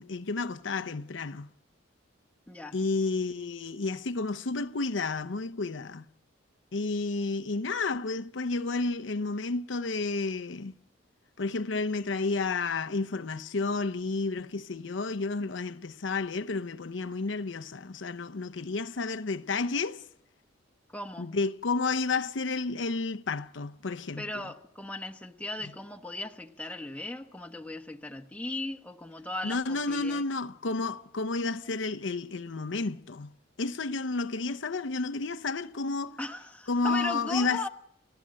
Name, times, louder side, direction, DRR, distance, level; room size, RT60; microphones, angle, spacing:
voice 1, 0.0-1.5 2.7-6.1 6.7-10.7 11.4-20.0 21.2-24.3 25.6-25.7 29.4-36.2 36.7-37.7, left 3 dB, 75° left, 0.7 m, -31 dB
voice 2, 20.9-21.3 24.2-30.2 36.2-37.7, left 2 dB, 5° left, 1.1 m, -37 dB
29.5 x 14.5 x 7.6 m
head